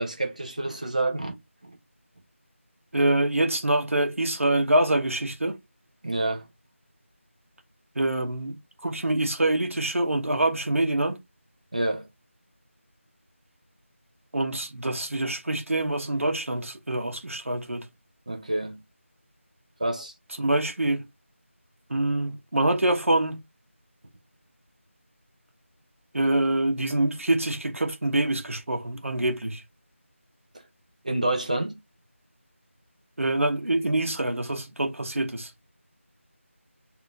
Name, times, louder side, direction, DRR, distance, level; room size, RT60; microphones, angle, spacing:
voice 1, 0.0-1.8 6.0-6.5 11.7-12.1 18.3-18.8 19.8-20.1 31.0-31.8, right 2 dB, 30° right, 0.7 m, -28 dB
voice 2, 2.9-5.6 7.9-11.2 14.3-17.9 20.4-21.0 21.9-23.4 26.1-29.6 33.2-35.5, right 1 dB, 75° right, 1.2 m, -25 dB
3.6 x 2.7 x 3.4 m
figure-of-eight pair, 175°, 7 cm